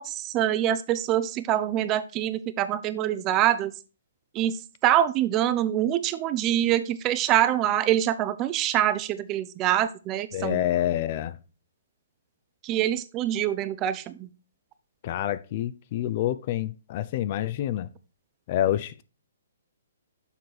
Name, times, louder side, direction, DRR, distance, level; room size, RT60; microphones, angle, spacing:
voice 1, 0.0-3.7 4.3-10.6 12.6-14.3, right 12 dB, 25° right, 0.4 m, -25 dB
voice 2, 10.3-11.4 15.0-17.9 18.5-19.0, left 12 dB, 40° left, 0.4 m, -27 dB
6.8 x 4.7 x 4.1 m
figure-of-eight pair, 125°, 0 cm